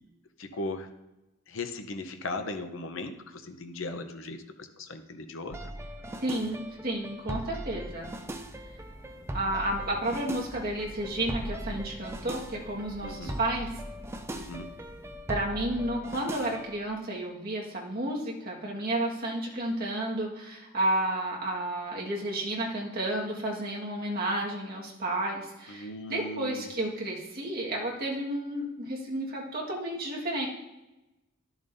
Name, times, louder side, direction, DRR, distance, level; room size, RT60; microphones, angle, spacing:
voice 1, 0.4-0.9 1.5-5.7 13.0-13.4 14.3-14.7 25.7-26.7, left 2 dB, 65° left, 7 dB, 0.8 m, -38 dB
sound 1, 5.5-16.8, right 1 dB, 10° right, 0.4 m, -40 dB
voice 2, 6.2-8.1 9.3-13.7 15.3-30.5, right 1 dB, 45° right, -3 dB, 1.7 m, -31 dB
Thunder / Rain, 7.6-15.6, equal, 25° left, 1.3 m, -47 dB
12.5 x 7.1 x 2.7 m, 1.0 s
head